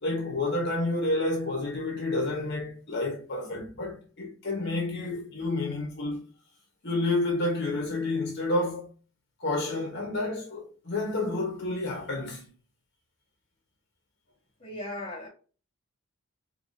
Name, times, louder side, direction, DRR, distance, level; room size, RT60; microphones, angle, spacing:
voice 1, 0.0-6.2 6.8-8.9 9.4-12.5, left 2 dB, 55° left, 1.1 m, -30 dB
voice 2, 14.6-15.3, left 1 dB, 30° left, 1.7 m, -37 dB
4.8 x 3.0 x 2.7 m
head